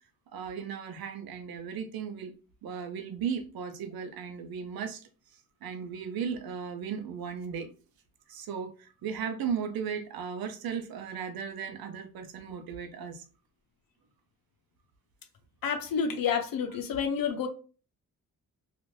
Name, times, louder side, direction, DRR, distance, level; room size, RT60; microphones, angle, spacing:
voice 1, 0.3-2.3 2.6-7.7 8.3-13.2 16.9-17.0, right 7 dB, 80° right, 0.6 m, -36 dB
voice 2, 15.6-17.5, left 6 dB, 75° left, 0.7 m, -29 dB
2.5 x 2.4 x 3.1 m
cardioid pair, 80°, 35 cm